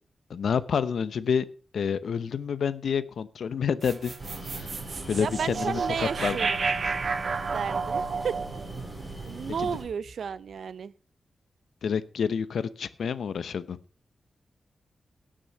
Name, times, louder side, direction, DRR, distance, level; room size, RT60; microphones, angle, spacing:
voice 1, 0.3-1.4 1.7-4.1 4.4-4.7 5.1-6.4 9.6-9.7 11.8-13.8, left 7 dB, 80° left, 15 dB, 0.8 m, -28 dB
sound 1, 3.8-10.1, right 4 dB, 55° right, 1.1 m, -32 dB
sound 2, 4.2-9.8, right 2 dB, 20° right, 5.6 m, -40 dB
voice 2, 5.2-6.6 7.5-8.4 9.3-10.9, right 6 dB, 80° right, 18 dB, 0.6 m, -32 dB
17.5 x 6.3 x 5.6 m, 0.41 s
wide cardioid pair, 90°, 0 cm